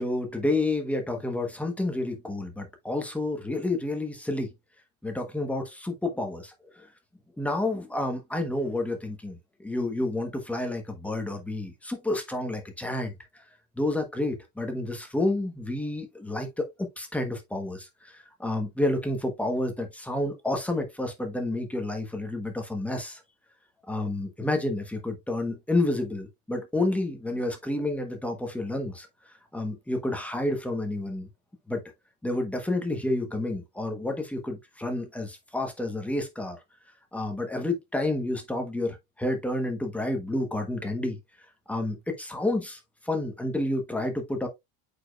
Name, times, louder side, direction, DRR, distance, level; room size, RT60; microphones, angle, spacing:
voice 1, 0.0-4.5 5.0-6.9 7.4-13.1 13.8-16.7 17.0-18.1 18.4-23.2 23.9-29.1 29.5-31.3 31.7-31.8 32.2-36.6 37.1-41.2 41.7-42.8 43.0-44.5, left 2 dB, 5° left, 1.0 m, -30 dB
8.3 x 5.2 x 2.3 m
cardioid pair, 175°, 44 cm